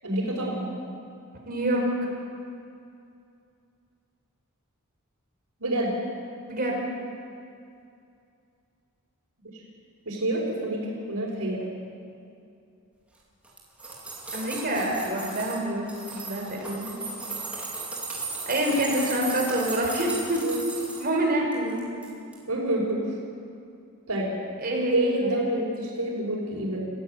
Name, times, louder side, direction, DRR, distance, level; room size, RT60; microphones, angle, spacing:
voice 1, 0.0-0.7 5.6-5.9 9.5-9.6 10.1-11.6 20.4-20.6 22.5-23.1 24.1-24.3 24.9-26.8, right 1 dB, 90° right, -7 dB, 5.2 m, -27 dB
voice 2, 1.5-1.8 6.5-6.8 14.3-17.0 18.4-20.4 21.0-21.8 24.6-25.1, right 1 dB, 40° right, 0 dB, 5.2 m, -26 dB
sound 1, 13.4-15.6 15.9-21.1 21.5-22.1 22.3-22.4, right 3 dB, 5° right, 4.3 m, -36 dB
29.5 x 15.5 x 8.1 m, 2.5 s
head